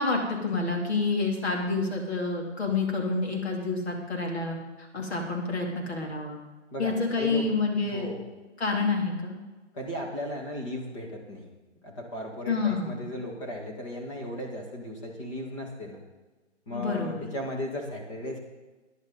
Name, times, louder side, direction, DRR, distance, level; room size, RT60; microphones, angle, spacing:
voice 1, 0.0-6.4 6.8-8.1 8.6-9.3 12.5-13.0 16.7-17.3, left 3 dB, 60° left, 0 dB, 3.0 m, -28 dB
voice 2, 6.7-7.5 7.8-8.2 9.7-11.5 11.8-16.0 16.7-18.4, left 1 dB, 25° left, 0 dB, 1.9 m, -36 dB
14.0 x 10.5 x 4.0 m, 1.2 s
hypercardioid pair, 170°, 36 cm